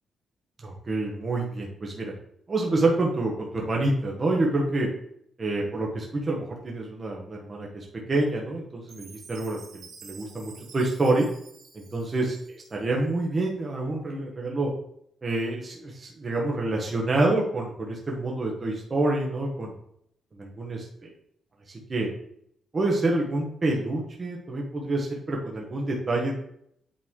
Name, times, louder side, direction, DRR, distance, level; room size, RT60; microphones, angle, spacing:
voice 1, 0.6-2.1 2.5-4.9 5.4-11.3 11.7-12.4 12.7-14.7 15.2-19.7 20.4-21.1 21.7-22.1 22.7-26.4, right 2 dB, 25° right, -2 dB, 0.9 m, -27 dB
Chime, 8.9-13.1, right 5 dB, 85° right, 1.6 m, -50 dB
8.5 x 3.1 x 3.6 m, 0.70 s
wide cardioid pair, 170°, 0 cm